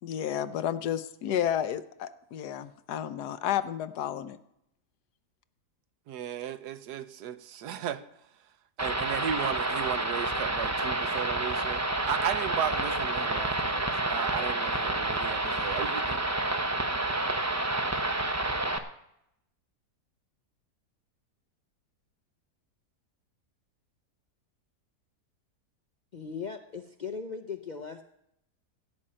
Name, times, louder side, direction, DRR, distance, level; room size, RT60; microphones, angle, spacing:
voice 1, 0.0-4.4, left 10 dB, 80° left, 13 dB, 1.3 m, -31 dB
voice 2, 6.1-8.0 8.8-16.2, right 9 dB, 80° right, 12 dB, 1.3 m, -35 dB
sound 1, 8.8-18.8, right 2 dB, 25° right, 0.4 m, -29 dB
voice 3, 26.1-28.0, left 5 dB, 55° left, 4 dB, 0.5 m, -38 dB
15.5 x 5.5 x 8.7 m, 0.79 s
omnidirectional pair, 1.7 m